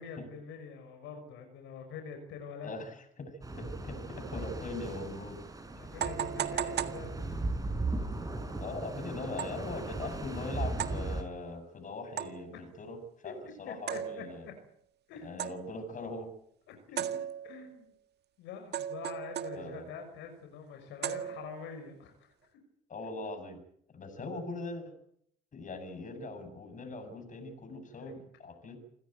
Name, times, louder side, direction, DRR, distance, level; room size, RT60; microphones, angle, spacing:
voice 1, 0.0-2.7 5.8-7.3 12.5-12.6 13.2-13.3 13.6-14.2 15.1-15.6 16.7-17.2 17.4-17.9 18.4-22.5 27.7-28.1, left 6 dB, 80° left, 5 dB, 5.9 m, -45 dB
voice 2, 2.6-5.4 8.6-14.5 15.2-16.3 19.5-19.9 22.9-23.6 23.9-24.8 25.5-28.8, left 2 dB, 45° left, 8 dB, 7.8 m, -41 dB
sound 1, 3.4-11.2, right 2 dB, 20° right, 5.6 m, -37 dB
sound 2, 5.0-5.1 6.0-7.7 9.4-9.7 10.8-11.1 12.2-12.6 13.9-14.5 15.4-15.8 17.0-17.7 18.7-19.9 21.0-21.7, right 10 dB, 60° right, 1.7 m, -37 dB
28.0 x 16.0 x 9.2 m, 0.70 s
supercardioid pair, 80°, 19 cm